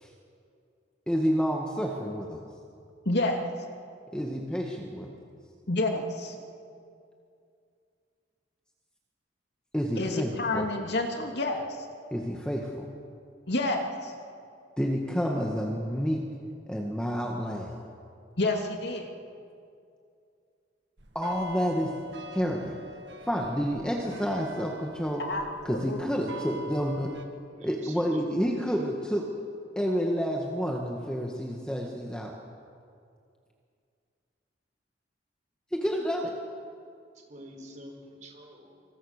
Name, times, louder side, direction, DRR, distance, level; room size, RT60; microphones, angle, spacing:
voice 1, 1.1-2.4 4.1-5.1 9.7-10.6 12.1-12.9 14.8-16.2 16.7-17.8 21.1-21.9 22.3-22.8 23.2-25.2 25.6-27.1 27.6-29.3 29.7-32.3 35.7-36.3, equal, 5° left, 0 dB, 1.8 m, -29 dB
voice 2, 3.0-3.4 5.7-6.3 10.0-11.7 13.5-14.1 18.4-19.1 25.2-26.0, left 2 dB, 65° left, 3 dB, 2.7 m, -29 dB
sound 1, 21.0-27.3, equal, 70° right, 2.1 m, -44 dB
voice 3, 27.5-28.4 37.1-38.8, equal, 45° right, 3 dB, 4.6 m, -45 dB
26.0 x 25.5 x 6.7 m, 2.4 s
head